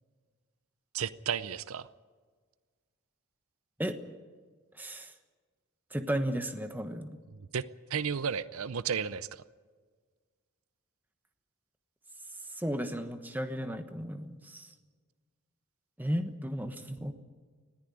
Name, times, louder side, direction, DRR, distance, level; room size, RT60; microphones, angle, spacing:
voice 1, 0.9-1.9 7.5-7.6 7.9-9.4, right 7 dB, 75° right, 16 dB, 0.6 m, -33 dB
voice 2, 4.7-5.1 5.9-7.2 12.5-14.7 16.0-17.1, equal, 10° right, 8 dB, 1.2 m, -34 dB
20.0 x 14.5 x 9.9 m, 1.5 s
head